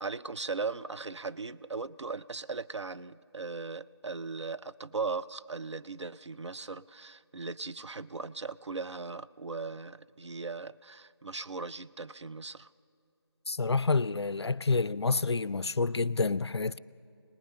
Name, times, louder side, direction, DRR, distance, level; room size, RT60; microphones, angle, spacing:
voice 1, 0.0-12.7, right 4 dB, 90° right, 0.6 m, -38 dB
voice 2, 13.5-16.8, left 4 dB, 70° left, 0.5 m, -28 dB
25.0 x 19.5 x 5.6 m
figure-of-eight pair, 170°, 14 cm